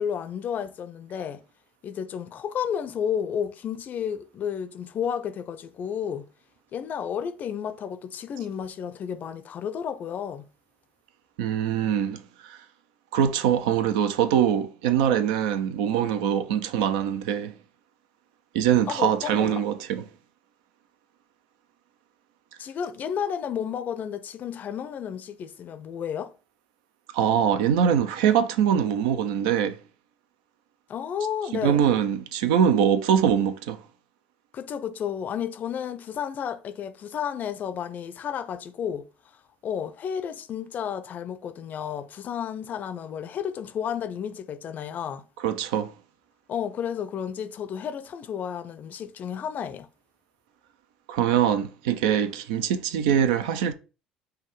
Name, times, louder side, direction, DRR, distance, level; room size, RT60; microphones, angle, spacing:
voice 1, 0.0-1.4 1.8-6.3 6.7-10.5 18.9-19.6 22.6-26.3 30.9-31.9 34.5-39.1 39.6-45.2 46.5-49.9, left 8 dB, 45° left, 0.4 m, -32 dB
voice 2, 11.4-12.6 13.1-17.5 18.5-20.0 27.1-29.8 31.6-33.8 45.4-45.9 51.1-53.7, right 9 dB, 75° right, 0.4 m, -23 dB
5.4 x 2.2 x 3.1 m
hypercardioid pair, 60°, 4 cm